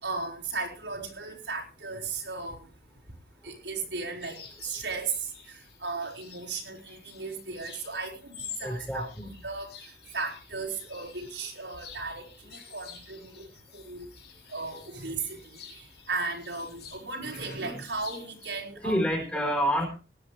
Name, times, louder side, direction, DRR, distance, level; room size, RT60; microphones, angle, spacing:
voice 1, 0.0-2.6 3.4-9.1 9.4-9.7 10.1-13.5 13.7-14.1 14.5-19.0, right 4 dB, 80° right, -1 dB, 4.7 m, -36 dB
sound 1, 4.2-18.6, left 8 dB, 60° left, 3.5 m, -49 dB
voice 2, 8.6-9.3 18.8-19.9, equal, 10° left, 2 dB, 4.0 m, -28 dB
18.5 x 11.5 x 3.3 m, 0.33 s
head